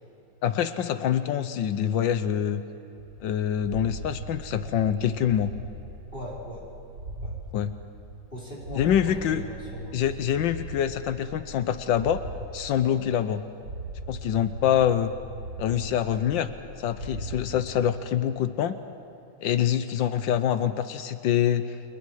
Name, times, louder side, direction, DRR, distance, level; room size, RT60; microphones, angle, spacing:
voice 1, 0.4-2.6 3.2-5.5 7.5-7.7 8.7-9.4 9.9-12.2 12.5-13.4 14.1-15.1 15.6-16.5 16.8-18.8 19.4-21.8, left 10 dB, 85° left, 11 dB, 1.6 m, -25 dB
sound 1, 3.0-7.4 7.8-12.4 12.8-13.4 13.6-17.4, right 2 dB, 65° right, 3.1 m, -40 dB
voice 2, 6.1-6.6 7.2-7.3 8.3-8.8 9.3-10.0 12.8-13.0, equal, 30° left, -4 dB, 4.8 m, -40 dB
29.0 x 29.0 x 4.8 m, 3.0 s
omnidirectional pair, 2.0 m